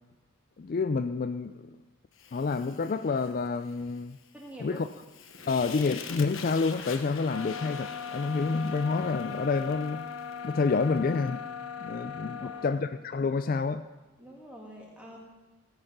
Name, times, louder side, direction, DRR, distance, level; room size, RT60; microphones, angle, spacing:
voice 1, 0.6-1.7 2.3-4.2 4.6-4.9 5.5-10.1 10.4-11.4 11.8-13.8, left 4 dB, 40° left, 10 dB, 0.3 m, -28 dB
Fire, 2.1-11.4, left 6 dB, 60° left, 1.1 m, -46 dB
voice 2, 4.3-4.9 5.4-5.7 12.2-12.7 14.2-15.2, equal, 5° right, -2 dB, 2.5 m, -47 dB
sound 1, 7.3-12.8, left 6 dB, 80° left, 0.8 m, -39 dB
17.0 x 8.0 x 6.0 m, 1.2 s
head